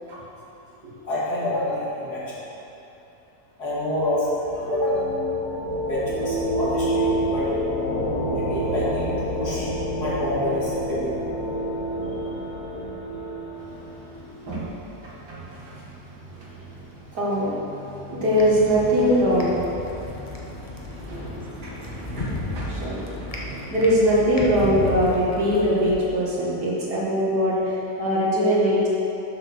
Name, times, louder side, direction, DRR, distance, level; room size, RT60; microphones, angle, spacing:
voice 1, 1.0-2.2 3.6-4.3 4.5-5.1 5.8-7.5 8.3-9.7 10.0-11.1, left 1 dB, 70° left, -8 dB, 2.6 m, -28 dB
sound 1, 3.8-14.3, equal, 50° left, 2.5 m, -28 dB
voice 2, 14.1-14.7 15.0-15.9 16.3-16.8 17.1-28.9, equal, 75° right, -6 dB, 2.3 m, -23 dB
sound 2, 18.3-26.0, left 1 dB, 30° left, 0.8 m, -34 dB
7.7 x 6.3 x 6.1 m, 3.0 s
omnidirectional pair, 1.8 m